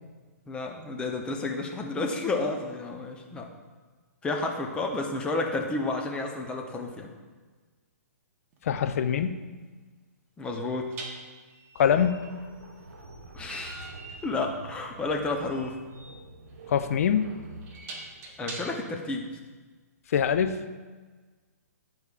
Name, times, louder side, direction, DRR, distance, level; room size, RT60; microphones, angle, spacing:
voice 1, 0.5-3.5 4.2-7.1 10.4-11.0 13.3-13.9 14.2-15.8 18.4-19.3, left 3 dB, 10° left, 2 dB, 0.7 m, -31 dB
sound 1, 8.5-8.7 10.9-19.0, right 2 dB, 25° right, 1.0 m, -45 dB
voice 2, 8.6-9.4 11.8-12.2 16.7-17.3 20.1-20.7, left 8 dB, 60° left, 10 dB, 0.5 m, -24 dB
sound 2, 11.8-19.2, right 2 dB, 85° right, 1.0 m, -47 dB
10.5 x 4.7 x 2.4 m, 1.4 s
hypercardioid pair, 140°, 9 cm